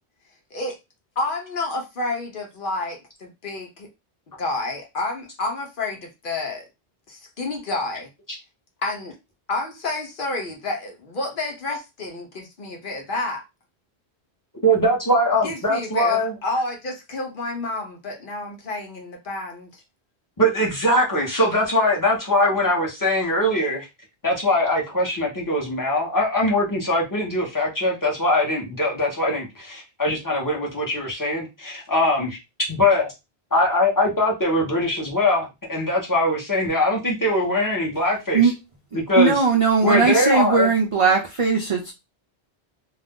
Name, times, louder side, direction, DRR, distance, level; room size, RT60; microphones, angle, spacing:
voice 1, 1.2-3.9 4.4-6.7 7.1-8.1 8.8-9.2 9.5-13.4 15.4-19.8, left 2 dB, 55° left, 0.8 m, -29 dB
voice 2, 14.6-16.3 20.4-23.8 24.2-32.4 32.7-33.1 33.5-38.5 38.9-39.4 39.8-40.7, left 1 dB, 20° left, 0.8 m, -21 dB
voice 3, 38.9-41.9, right 4 dB, 55° right, 0.3 m, -19 dB
2.5 x 2.2 x 3.5 m
omnidirectional pair, 1.1 m